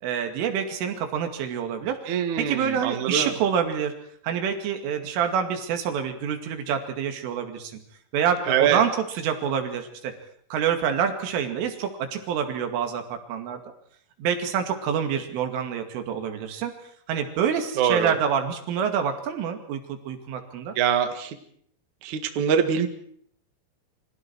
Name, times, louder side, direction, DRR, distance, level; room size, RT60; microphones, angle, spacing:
voice 1, 0.0-3.9 4.2-7.8 8.1-10.1 10.5-13.6 14.2-16.7 17.1-20.7, right 8 dB, 85° right, 5 dB, 4.9 m, -27 dB
voice 2, 2.1-3.3 8.5-8.8 17.8-18.2 20.8-21.4 22.0-22.9, right 8 dB, 50° right, 7 dB, 2.6 m, -23 dB
29.0 x 25.0 x 4.7 m, 0.64 s
omnidirectional pair, 5.5 m